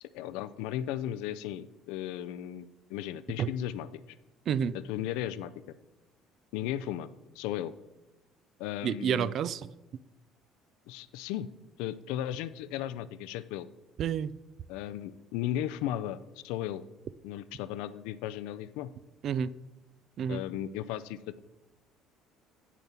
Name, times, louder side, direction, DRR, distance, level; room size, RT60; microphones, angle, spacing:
voice 1, 0.0-4.0 4.7-5.5 6.5-7.1 7.4-7.7 8.6-9.3 10.9-11.5 11.8-13.7 14.7-16.8 17.2-18.9 20.3-21.4, left 12 dB, 90° left, 15 dB, 0.4 m, -35 dB
voice 2, 4.5-4.8 8.8-9.7 14.0-14.3 19.2-19.5 20.2-20.4, right 8 dB, 50° right, 18 dB, 0.3 m, -29 dB
8.4 x 6.9 x 4.3 m, 1.0 s
cardioid pair, 115°, 0 cm